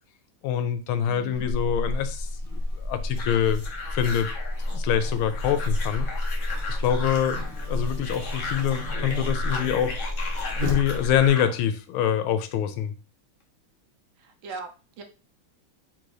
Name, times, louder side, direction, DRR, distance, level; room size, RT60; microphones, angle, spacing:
voice 1, 0.4-3.6 3.9-4.3 4.7-6.1 6.7-10.0 10.6-12.9, left 9 dB, 80° left, 9 dB, 1.4 m, -25 dB
voice 2, 1.0-1.5 14.2-15.0, right 4 dB, 75° right, 5 dB, 1.5 m, -40 dB
Buzz, 1.3-11.3, left 1 dB, 35° right, 1.0 m, -30 dB
sound 1, 3.2-11.5, left 3 dB, 50° left, 0.9 m, -36 dB
4.1 x 2.6 x 4.7 m, 0.34 s
omnidirectional pair, 2.3 m